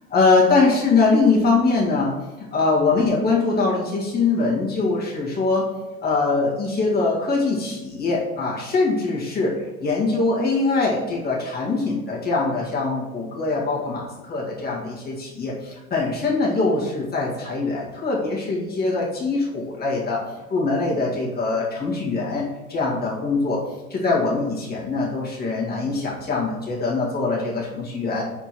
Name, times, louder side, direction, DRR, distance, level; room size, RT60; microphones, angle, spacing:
voice 1, 0.1-2.1 2.5-5.7 6.0-20.2 20.5-23.6 23.9-28.2, left 3 dB, 20° left, -4 dB, 1.8 m, -22 dB
4.9 x 4.3 x 4.4 m, 1.1 s
figure-of-eight pair, 80°, 43 cm